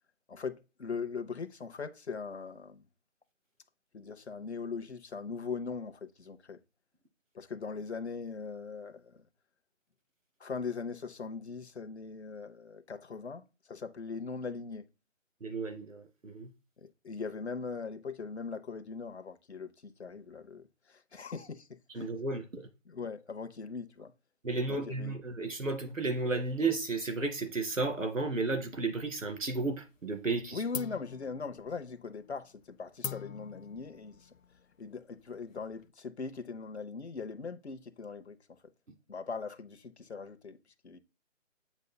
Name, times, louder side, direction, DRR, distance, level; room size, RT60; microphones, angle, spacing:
voice 1, 0.3-2.9 3.9-6.6 7.3-9.3 10.4-14.9 16.8-22.1 22.8-24.1 24.6-25.2 30.5-34.3 34.8-38.7 39.1-40.6 40.8-41.0, left 5 dB, 60° left, 0.8 m, -40 dB
voice 2, 15.4-16.5 21.9-22.7 24.4-30.6, right 3 dB, 90° right, 2.5 m, -33 dB
sound 1, 28.8-29.7 30.0-30.4 30.7-35.9, left 8 dB, 90° left, 0.6 m, -45 dB
8.2 x 5.3 x 2.2 m
figure-of-eight pair, 175°, 38 cm